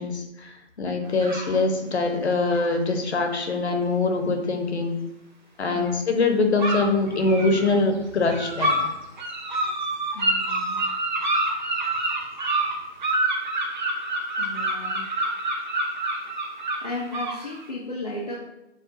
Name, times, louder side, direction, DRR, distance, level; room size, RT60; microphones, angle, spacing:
voice 1, 0.0-5.0 5.6-8.9, left 3 dB, 65° left, 4 dB, 0.9 m, -23 dB
sound 1, 1.2-1.6 2.5-2.7 5.7-5.9 6.6-7.7 8.3-8.9 9.2-17.6, right 1 dB, 40° right, 0.7 m, -27 dB
voice 2, 10.1-10.9 14.4-15.0 16.8-18.4, left 2 dB, 35° left, -4 dB, 0.5 m, -34 dB
7.3 x 2.5 x 2.6 m, 0.93 s
figure-of-eight pair, 155°, 36 cm